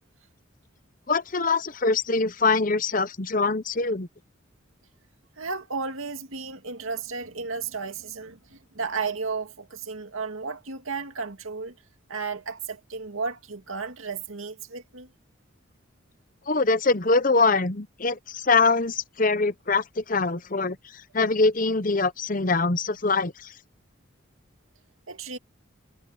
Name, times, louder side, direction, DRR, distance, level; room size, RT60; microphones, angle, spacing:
voice 1, 1.1-4.1 16.5-23.5, left 3 dB, 40° left, 0.9 m, -23 dB
voice 2, 5.4-11.7 12.1-15.1 21.2-21.3 25.1-25.4, right 4 dB, 80° right, 2.3 m, -33 dB
head